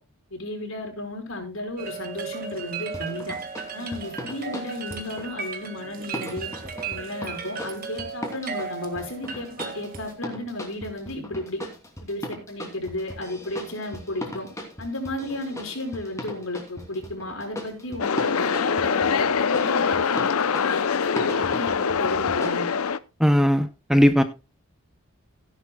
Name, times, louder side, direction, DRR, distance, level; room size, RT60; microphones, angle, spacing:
voice 1, 0.3-3.4 3.7-6.5 6.9-11.6 12.0-14.5 14.8-20.8 21.2-22.7, left 1 dB, 70° left, 5.5 m, -33 dB
sound 1, 1.8-10.1, right 5 dB, 40° right, 1.9 m, -36 dB
sound 2, 2.9-5.3 6.1-22.5, equal, 15° left, 2.9 m, -38 dB
sound 3, 18.0-23.0, left 6 dB, 85° left, 0.6 m, -24 dB
voice 2, 23.2-24.2, equal, ahead, 0.6 m, -18 dB
16.0 x 11.0 x 2.3 m
head